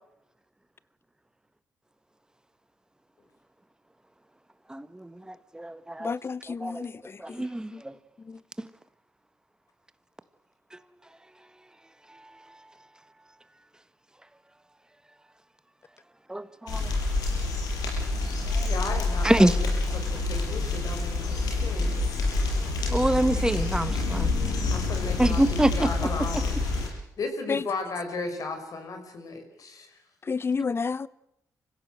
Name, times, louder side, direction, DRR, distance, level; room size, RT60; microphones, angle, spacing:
voice 1, 4.7-5.1 5.5-6.1 6.6-6.8 7.3-7.7 8.6-8.7 16.3-16.8 19.2-19.5 22.9-24.3 25.2-25.9 30.6-30.7, right 1 dB, 10° right, 1.6 m, -24 dB
voice 2, 6.0-6.9 7.7-7.8 8.3-8.4 27.5-27.6 30.3-31.1, left 5 dB, 40° left, 0.9 m, -29 dB
sound 1, 16.7-26.9, left 3 dB, 85° left, 6.7 m, -27 dB
voice 3, 18.6-21.9 22.2-22.4 24.6-26.4 27.2-30.0, left 3 dB, 65° left, 5.8 m, -35 dB
25.5 x 16.5 x 7.9 m
supercardioid pair, 60°, 7 cm